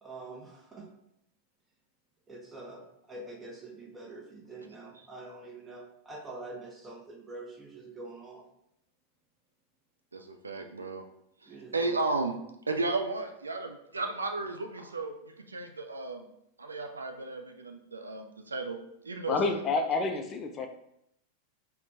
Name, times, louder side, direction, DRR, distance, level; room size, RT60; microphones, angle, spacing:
voice 1, 0.0-0.9 2.3-8.4 11.5-12.0, right 2 dB, 15° right, 0 dB, 0.7 m, -45 dB
voice 2, 10.1-11.0 11.4-12.3 12.7-15.1 15.5-16.3 16.6-18.8 19.0-19.6, right 3 dB, 75° right, 5 dB, 0.3 m, -34 dB
voice 3, 19.3-20.7, left 4 dB, 30° left, 5 dB, 0.3 m, -29 dB
4.2 x 2.1 x 2.6 m, 0.77 s
figure-of-eight pair, 90°, 0 cm